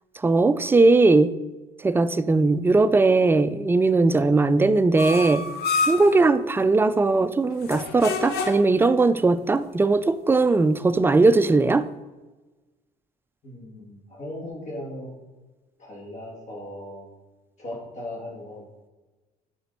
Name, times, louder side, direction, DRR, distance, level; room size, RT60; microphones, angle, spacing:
voice 1, 0.2-1.3 1.8-5.4 5.8-11.9, right 3 dB, 15° right, 13 dB, 0.4 m, -19 dB
sound 1, 5.0-6.2 7.6-8.8, left 4 dB, 75° left, 1.0 m, -28 dB
voice 2, 13.4-15.1 15.8-17.0 17.6-18.7, left 1 dB, 45° left, -2 dB, 2.5 m, -37 dB
7.9 x 5.2 x 4.2 m, 1.2 s
cardioid pair, 110°, 17 cm